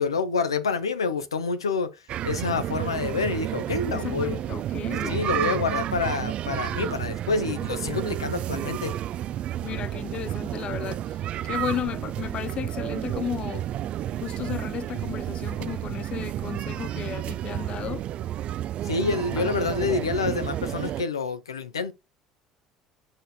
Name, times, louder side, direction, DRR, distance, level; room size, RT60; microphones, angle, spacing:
voice 1, 0.0-1.9 2.2-4.4 5.1-8.9 18.8-21.9, left 4 dB, 90° left, 0.6 m, -27 dB
sound 1, 2.1-21.0, right 12 dB, 50° right, 0.4 m, -31 dB
voice 2, 3.9-5.2 5.5-5.7 9.6-13.7 14.2-18.0 19.4-19.6, left 10 dB, 45° left, 0.5 m, -34 dB
6.3 x 4.3 x 4.1 m
hypercardioid pair, 65°, 2 cm